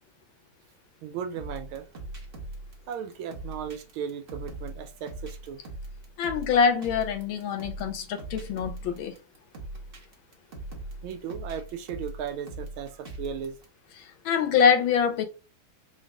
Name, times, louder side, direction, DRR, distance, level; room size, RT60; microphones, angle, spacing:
voice 1, 1.0-1.9 2.9-5.6 11.0-13.6, right 7 dB, 90° right, 1.5 m, -36 dB
sound 1, 1.4-13.6, right 2 dB, 45° right, 0.8 m, -40 dB
voice 2, 6.2-9.1 14.3-15.3, left 6 dB, 75° left, 1.5 m, -24 dB
4.1 x 2.3 x 3.4 m
omnidirectional pair, 2.2 m